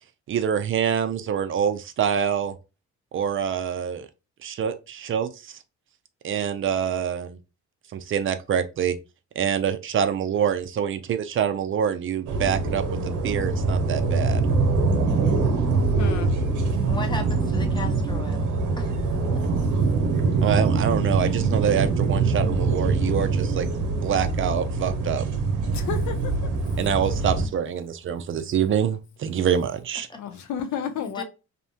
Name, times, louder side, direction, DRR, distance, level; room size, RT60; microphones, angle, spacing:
voice 1, 0.3-2.6 3.1-4.1 4.4-5.6 6.2-7.4 7.9-9.0 9.4-14.4 20.4-23.7 24.0-25.3 26.8-30.1, right 8 dB, 45° right, 0.4 m, -26 dB
sound 1, 12.3-27.5, right 4 dB, 80° right, 0.7 m, -23 dB
voice 2, 16.0-16.3 19.9-20.0 25.7-26.3 30.2-31.2, left 8 dB, 70° left, 0.5 m, -31 dB
voice 3, 16.9-18.5 18.8-18.9 31.0-31.2, left 2 dB, 15° left, 0.7 m, -36 dB
2.7 x 2.1 x 2.7 m
cardioid pair, 90°, 30 cm